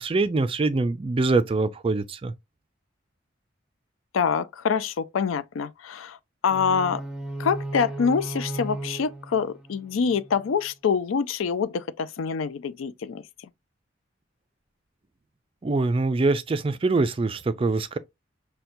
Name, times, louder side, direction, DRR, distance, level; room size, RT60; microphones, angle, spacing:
voice 1, 0.0-2.3 15.6-18.0, right 3 dB, 25° right, 0.3 m, -24 dB
voice 2, 4.1-6.2 6.4-7.0 7.4-13.2, left 6 dB, 90° left, 0.4 m, -25 dB
sound 1, 6.5-10.5, right 1 dB, 5° right, 0.8 m, -36 dB
5.6 x 2.2 x 2.6 m
head